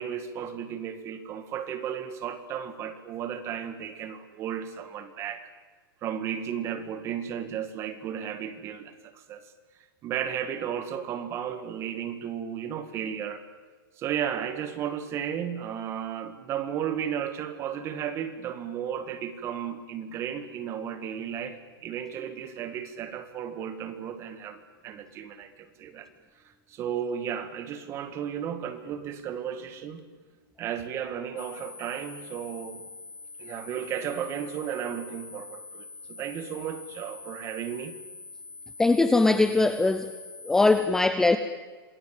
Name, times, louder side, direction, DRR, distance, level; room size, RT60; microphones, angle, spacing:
voice 1, 0.0-5.5 6.0-9.5 10.0-13.4 14.0-26.1 26.7-30.0 30.6-32.9 33.4-37.9, right 9 dB, 20° right, 10 dB, 2.1 m, -34 dB
sound 1, 31.4-40.8, left 3 dB, 60° left, 4.7 m, -45 dB
voice 2, 38.8-40.1 40.4-41.4, left 3 dB, 5° left, 10 dB, 0.7 m, -21 dB
27.5 x 20.5 x 9.0 m, 1.4 s
supercardioid pair, 165°, 12 cm